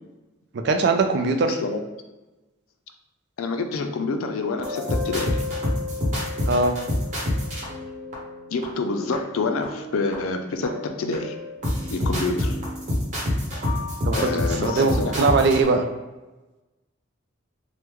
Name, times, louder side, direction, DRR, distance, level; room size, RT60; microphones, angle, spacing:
voice 1, 0.6-1.6 6.5-6.7 14.0-14.3 14.6-15.9, right 3 dB, 55° right, 5 dB, 0.3 m, -21 dB
voice 2, 1.4-1.8 3.4-5.3 8.5-11.3 11.9-12.6 14.1-15.4, left 3 dB, 85° left, 6 dB, 0.4 m, -27 dB
sound 1, 4.6-8.6 9.1-9.2 9.6-10.3 10.6-15.6, left 1 dB, 35° right, 0.9 m, -27 dB
3.5 x 2.1 x 3.0 m, 1.1 s
head